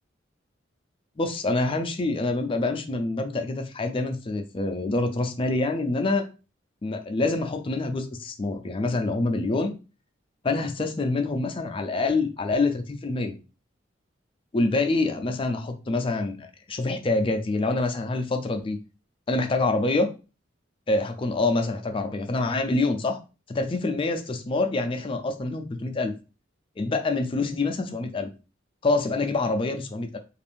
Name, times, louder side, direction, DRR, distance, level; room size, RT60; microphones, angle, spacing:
voice 1, 1.2-6.3 6.8-9.8 10.4-13.4 14.5-18.8 19.3-20.1 20.9-23.2 23.5-26.1 26.8-28.3 28.8-30.2, left 2 dB, 30° left, 6 dB, 0.4 m, -26 dB
2.6 x 2.4 x 3.3 m, 0.32 s
head